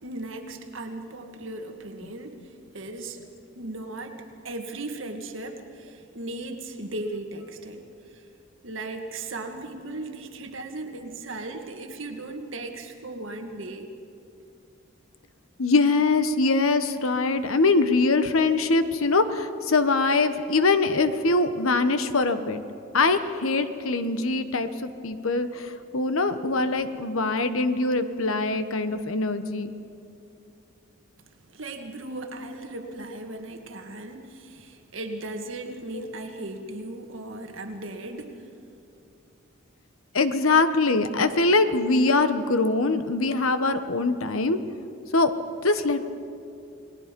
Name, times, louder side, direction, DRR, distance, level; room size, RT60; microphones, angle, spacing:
voice 1, 0.0-2.5 2.7-3.2 3.6-7.9 8.1-8.3 8.6-13.9 24.2-24.3 31.5-38.4, right 2 dB, 70° right, 4 dB, 1.9 m, -37 dB
voice 2, 15.6-22.6 22.9-29.7 35.9-36.0 40.1-44.6 45.1-45.3 45.6-46.0, left 3 dB, 85° left, 10 dB, 1.1 m, -23 dB
29.0 x 19.5 x 5.3 m, 2.6 s
head